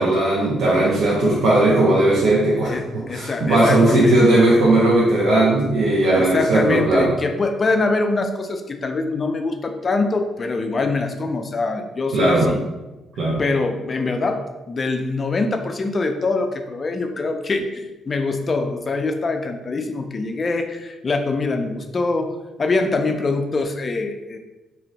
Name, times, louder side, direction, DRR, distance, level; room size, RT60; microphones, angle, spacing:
voice 1, 0.0-7.1 12.1-12.5 13.2-13.4, right 2 dB, 75° right, -6 dB, 0.6 m, -17 dB
voice 2, 2.6-4.4 6.1-12.6 13.4-24.4, left 3 dB, 35° left, 6 dB, 0.4 m, -24 dB
2.5 x 2.1 x 3.9 m, 1.1 s
cardioid pair, 90°, 0 cm